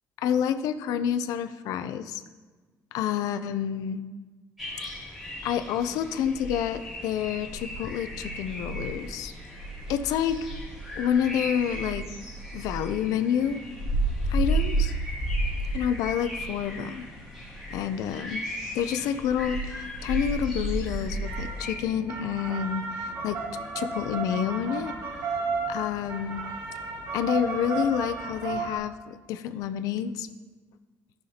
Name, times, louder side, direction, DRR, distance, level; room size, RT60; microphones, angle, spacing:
voice 1, 0.2-2.2 2.9-4.0 5.4-9.3 9.9-10.5 11.0-12.0 12.5-13.6 14.3-14.9 15.7-17.0 17.7-18.4 18.7-23.4 23.7-24.9 25.7-26.4 27.1-30.3, left 9 dB, 80° left, 10 dB, 0.5 m, -28 dB
sound 1, 4.6-21.7, right 1 dB, 5° right, 3.0 m, -33 dB
sound 2, 21.2-28.8, right 4 dB, 85° right, 2.3 m, -33 dB
15.0 x 5.7 x 2.8 m, 1.3 s
cardioid pair, 165°, 6 cm